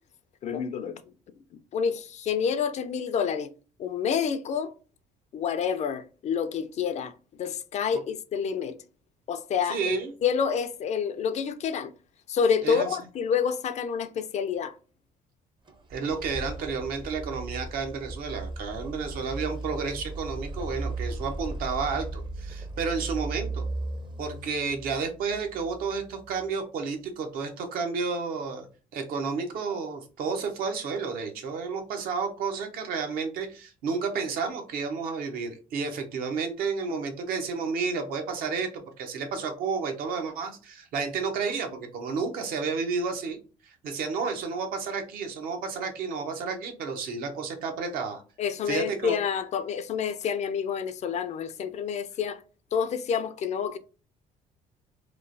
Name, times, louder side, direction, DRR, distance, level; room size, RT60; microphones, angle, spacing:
voice 1, 0.4-1.0 1.5-3.5 3.8-4.7 5.3-7.1 7.4-8.8 9.3-11.9 12.3-14.7 48.4-52.4 52.7-53.8, left 7 dB, 45° left, 0.4 m, -28 dB
voice 2, 9.7-10.1 12.6-12.9 15.9-23.6 24.2-28.7 28.9-43.4 43.6-48.2 48.7-49.2, right 5 dB, 70° right, 0.7 m, -31 dB
sound 1, 15.7-26.5, right 2 dB, 30° right, 0.6 m, -37 dB
3.0 x 2.0 x 2.5 m
supercardioid pair, 75°, 16 cm